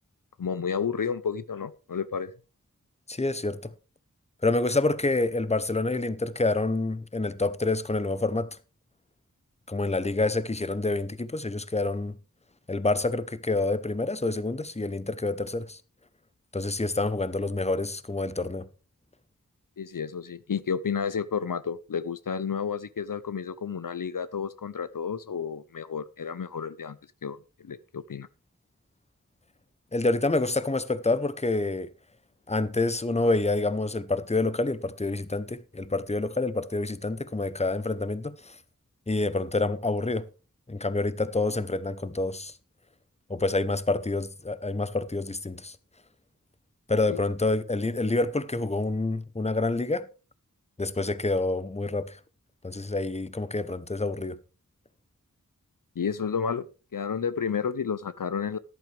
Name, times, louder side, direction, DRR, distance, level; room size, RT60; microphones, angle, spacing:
voice 1, 0.4-2.3 19.8-27.4 27.6-28.3 47.1-47.2 56.0-56.7 56.9-58.6, left 6 dB, 75° left, 0.6 m, -31 dB
voice 2, 3.1-3.7 4.4-8.6 9.7-12.2 12.7-15.8 16.5-18.7 29.9-31.9 32.5-38.6 39.1-40.3 40.7-42.6 43.3-45.8 46.9-50.1 50.8-52.2 52.6-54.4, left 2 dB, 20° left, 0.8 m, -27 dB
13.5 x 11.0 x 3.3 m
wide cardioid pair, 40°, 33 cm